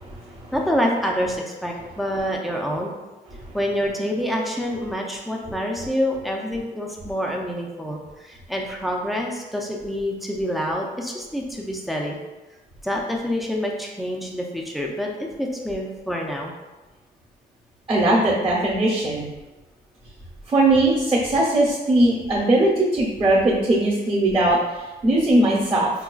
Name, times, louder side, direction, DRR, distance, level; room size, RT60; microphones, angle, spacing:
voice 1, 0.0-0.5 3.4-3.5 17.9-19.3 20.5-25.9, right 1 dB, 30° right, -6 dB, 0.9 m, -20 dB
voice 2, 0.5-2.9 3.5-12.2 12.8-16.5, equal, ahead, -1 dB, 0.4 m, -27 dB
5.6 x 2.3 x 2.3 m, 1.1 s
wide cardioid pair, 155°, 17 cm